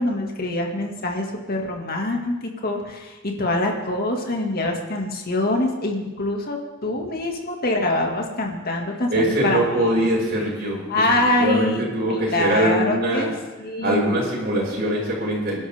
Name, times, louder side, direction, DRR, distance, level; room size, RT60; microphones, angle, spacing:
voice 1, 0.0-10.0 10.9-11.8 12.1-13.3 13.6-14.2, left 2 dB, 50° left, 1 dB, 2.2 m, -25 dB
voice 2, 9.1-13.3 13.8-15.6, right 1 dB, 55° right, -4 dB, 6.3 m, -22 dB
26.5 x 12.0 x 3.7 m, 1.1 s
head